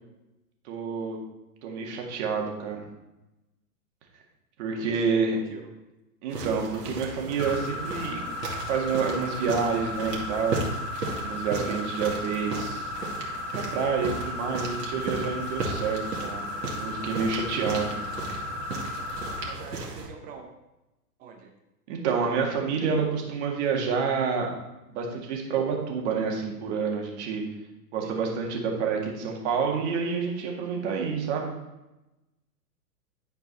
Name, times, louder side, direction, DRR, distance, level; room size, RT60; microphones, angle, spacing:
voice 1, 0.7-1.2 1.6-2.8 4.6-5.4 6.2-8.2 8.7-10.6 11.2-12.9 13.5-16.5 16.7-18.0 21.9-24.5 24.9-27.4 27.9-31.5, right 5 dB, 45° right, 1 dB, 2.0 m, -28 dB
voice 2, 4.8-5.7 11.5-11.8 19.4-20.5 21.2-21.5 28.0-28.1, right 6 dB, 20° right, 3 dB, 0.6 m, -43 dB
sound 1, 6.3-20.1, right 3 dB, 85° right, 2.2 m, -36 dB
sound 2, 7.4-19.5, left 2 dB, 25° left, 0.7 m, -35 dB
11.0 x 4.6 x 4.1 m, 0.98 s
hypercardioid pair, 125°, 48 cm